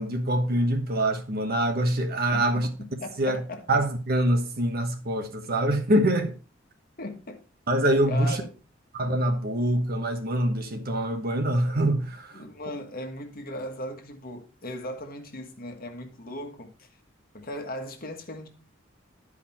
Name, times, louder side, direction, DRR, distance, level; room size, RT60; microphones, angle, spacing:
voice 1, 0.0-2.7 3.2-3.4 3.7-6.3 7.7-8.4 8.9-12.4, right 1 dB, 50° right, 1.2 m, -25 dB
voice 2, 2.8-3.6 7.0-7.4 8.1-8.5 12.3-16.9 17.3-18.5, left 1 dB, 50° left, 1.4 m, -37 dB
11.0 x 5.0 x 4.3 m
head